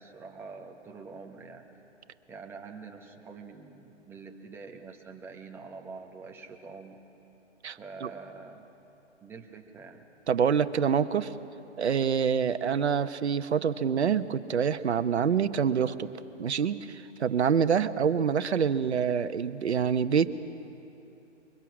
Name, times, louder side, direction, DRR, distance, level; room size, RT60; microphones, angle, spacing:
voice 1, 0.0-1.7 2.3-7.0 7.7-8.6 9.2-10.0, right 4 dB, 5° right, 1 dB, 1.1 m, -45 dB
voice 2, 7.6-8.1 10.3-11.3 11.8-16.1 16.4-20.4, right 7 dB, 65° right, 11 dB, 1.1 m, -26 dB
27.0 x 23.0 x 6.3 m, 2.9 s
figure-of-eight pair, 140°, 36 cm